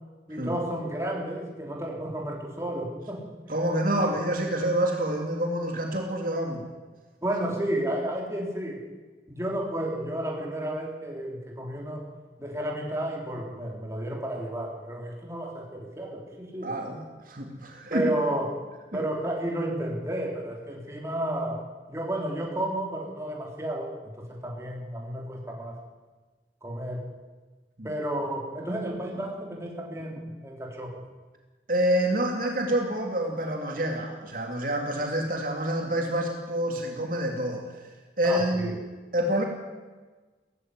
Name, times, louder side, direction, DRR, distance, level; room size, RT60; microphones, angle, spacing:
voice 1, 0.3-3.2 7.2-8.8 9.3-12.0 12.4-16.7 17.9-18.5 18.9-21.6 21.9-25.8 26.6-27.1 27.8-30.9 38.2-38.7, right 1 dB, 15° right, -1 dB, 3.7 m, -32 dB
voice 2, 3.5-6.6 16.6-18.1 18.9-19.1 27.8-27.9 31.7-37.8 38.2-38.8 39.1-39.4, right 1 dB, 50° right, 2 dB, 2.6 m, -27 dB
18.0 x 15.0 x 9.7 m, 1.3 s
head